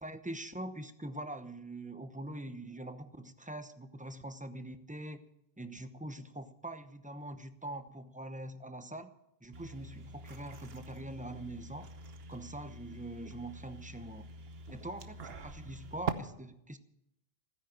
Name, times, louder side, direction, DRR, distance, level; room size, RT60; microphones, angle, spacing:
voice 1, 0.0-5.2 5.6-9.1 9.4-11.9 12.3-14.3 14.7-16.8, right 1 dB, 10° right, 10 dB, 0.8 m, -43 dB
sound 1, 9.5-16.1, right 4 dB, 70° right, 1.2 m, -44 dB
16.0 x 10.0 x 7.6 m, 0.80 s
omnidirectional pair, 1.1 m